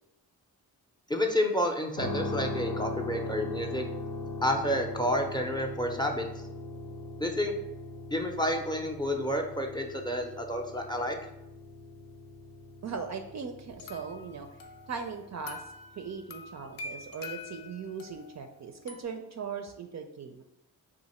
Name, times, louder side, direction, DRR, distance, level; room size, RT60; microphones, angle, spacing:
voice 1, 1.1-3.8 4.4-6.3 7.2-7.5 8.1-11.2, left 1 dB, 10° left, 3 dB, 0.5 m, -30 dB
sound 1, 2.0-16.0, left 2 dB, 80° left, 1.0 m, -40 dB
voice 2, 12.8-14.5 14.9-15.6 16.0-20.4, right 5 dB, 45° right, 5 dB, 0.4 m, -39 dB
sound 2, 13.8-19.0, left 4 dB, 55° left, 0.5 m, -45 dB
2.8 x 2.5 x 4.2 m, 0.85 s
supercardioid pair, 45°, 41 cm